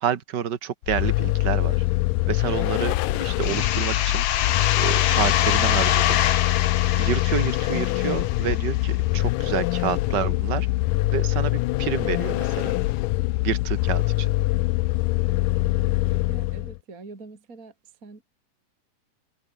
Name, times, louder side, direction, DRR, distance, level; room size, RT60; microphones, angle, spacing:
voice 1, 0.0-1.8 2.3-6.2 6.9-10.7 11.1-12.7 13.4-14.3, right 9 dB, 50° right, 1.3 m, -29 dB
Vehicle, 0.8-16.8, left 19 dB, 80° left, 2.1 m, -24 dB
sound 1, 3.4-8.9, left 11 dB, 60° left, 1.7 m, -25 dB
voice 2, 16.1-17.7 18.0-18.2, right 3 dB, 25° right, 3.6 m, -44 dB
omnidirectional pair, 4.1 m